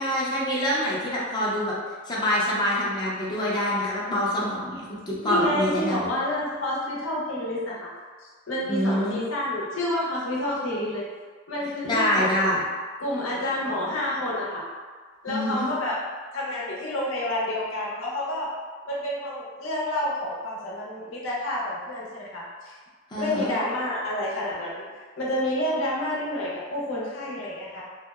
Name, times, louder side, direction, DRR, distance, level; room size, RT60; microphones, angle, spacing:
voice 1, 0.0-1.7 2.1-6.1 8.7-9.2 11.8-12.6 15.3-15.7 23.1-23.5, equal, 20° left, -6 dB, 0.5 m, -25 dB
voice 2, 5.2-7.9 8.5-11.0 11.5-12.5 13.0-14.7 15.2-16.0 16.3-18.5 18.9-22.7 23.2-24.9 25.2-27.8, left 1 dB, 75° left, -5 dB, 0.7 m, -29 dB
2.7 x 2.0 x 2.3 m, 1.5 s
head